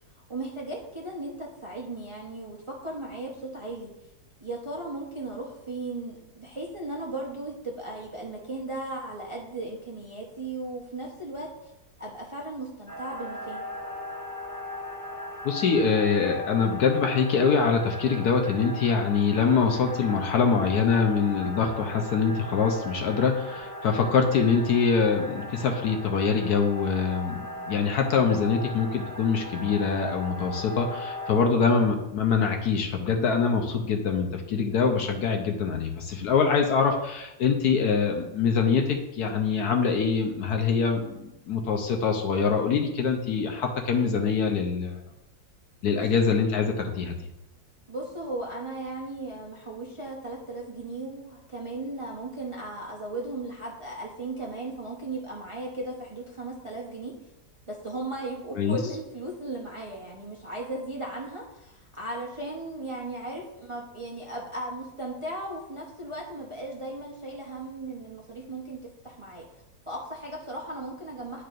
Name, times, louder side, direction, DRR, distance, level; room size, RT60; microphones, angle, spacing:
voice 1, 0.3-3.9 4.4-11.7 12.0-13.7 45.8-46.0 47.9-57.1 57.7-69.5 69.9-71.4, right 2 dB, 25° right, -3 dB, 0.7 m, -36 dB
sound 1, 12.9-31.5, left 1 dB, 20° left, 2.7 m, -38 dB
voice 2, 15.4-45.0 45.8-47.2 58.5-58.8, left 5 dB, 65° left, 3 dB, 1.2 m, -24 dB
10.5 x 4.7 x 2.5 m, 0.88 s
omnidirectional pair, 1.9 m